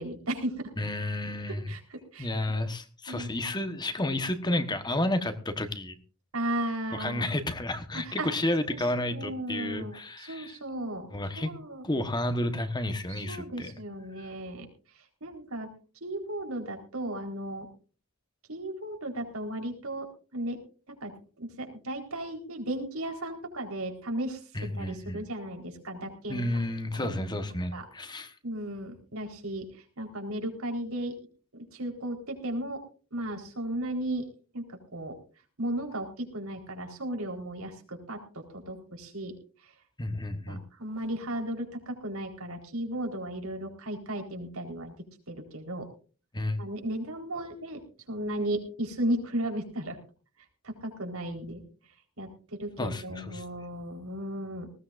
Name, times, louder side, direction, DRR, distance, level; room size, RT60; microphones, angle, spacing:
voice 1, 0.0-0.7 1.5-2.3 3.1-3.3 6.3-7.3 8.0-8.3 8.7-8.8 9.0-11.1 11.4-11.8 13.1-14.7 15.2-15.7 16.0-17.7 18.5-20.1 20.3-20.6 20.9-21.1 21.4-24.4 24.8-27.2 27.7-27.8 28.4-29.6 30.0-31.1 31.7-32.8 33.1-34.2 34.5-34.6 34.9-35.1 35.6-38.2 38.5-39.3 40.5-44.9 45.3-45.9 46.6-47.8 48.1-50.0 50.6-51.6 52.2-54.7, right 1 dB, 80° right, 3 dB, 4.3 m, -35 dB
voice 2, 0.8-1.7 2.2-6.0 6.9-10.6 11.1-11.5 11.8-13.7 14.2-14.3 24.5-25.2 26.3-28.3 40.0-40.6 46.3-46.6 52.8-53.4, left 1 dB, 20° left, 9 dB, 1.2 m, -31 dB
19.5 x 17.0 x 2.6 m, 0.37 s
head